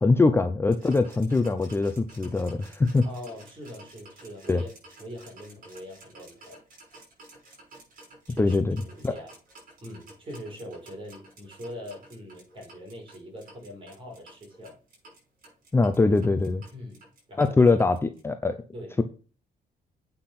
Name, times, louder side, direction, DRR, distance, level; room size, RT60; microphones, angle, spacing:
voice 1, 0.0-3.0 4.5-4.6 8.4-8.8 9.0-9.1 15.7-16.6 17.4-18.6, left 3 dB, 15° left, 8 dB, 0.6 m, -22 dB
sound 1, 0.7-18.2, right 2 dB, 55° right, 6.1 m, -52 dB
voice 2, 3.0-4.7 5.0-6.6 8.3-8.6 8.8-9.3 9.8-14.8 16.7-17.0 17.3-17.8 18.7-19.0, equal, 30° right, -1 dB, 5.6 m, -42 dB
8.5 x 5.8 x 5.8 m, 0.36 s
cardioid pair, 160°, 17 cm